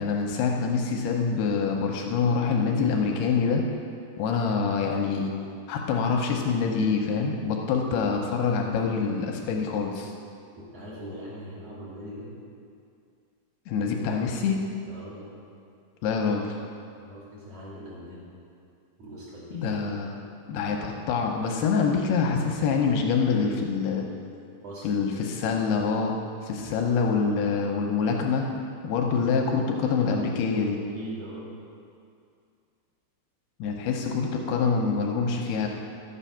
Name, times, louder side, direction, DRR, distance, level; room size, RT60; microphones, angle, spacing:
voice 1, 0.0-3.7 4.2-5.3 5.7-10.1 13.7-14.6 16.0-16.6 19.5-20.2 20.5-24.1 24.8-28.5 28.8-30.8 33.6-35.7, left 5 dB, 80° left, 1 dB, 2.5 m, -25 dB
voice 2, 10.7-12.3 14.8-15.3 17.0-18.3 19.0-19.8 24.6-24.9 29.0-29.1 30.9-31.5, equal, 40° right, -7 dB, 3.1 m, -41 dB
12.5 x 7.4 x 5.6 m, 2.4 s
omnidirectional pair, 5.1 m